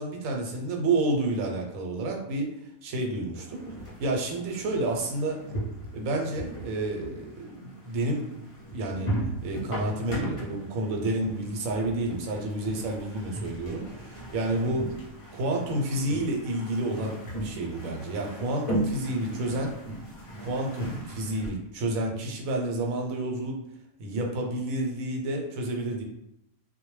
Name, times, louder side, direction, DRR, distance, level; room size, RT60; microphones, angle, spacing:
voice 1, 0.0-2.5 2.8-3.6 4.0-5.4 5.9-9.1 9.4-14.9 15.3-19.7 20.4-23.6 24.0-26.0, right 2 dB, 85° right, 1 dB, 1.0 m, -30 dB
sound 1, 3.3-21.5, right 1 dB, 35° left, 0.5 m, -37 dB
2.2 x 2.1 x 3.0 m, 0.81 s
omnidirectional pair, 1.4 m